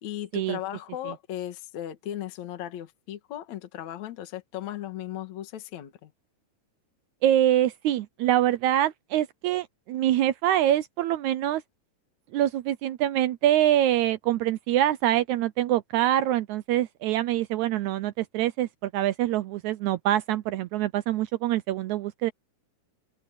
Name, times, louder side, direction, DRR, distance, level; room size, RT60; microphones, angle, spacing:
voice 1, 0.0-6.1, left 12 dB, 60° left, 2.7 m, -36 dB
voice 2, 7.2-11.6 12.3-22.3, right 12 dB, 80° right, 1.7 m, -25 dB
open air
omnidirectional pair, 3.9 m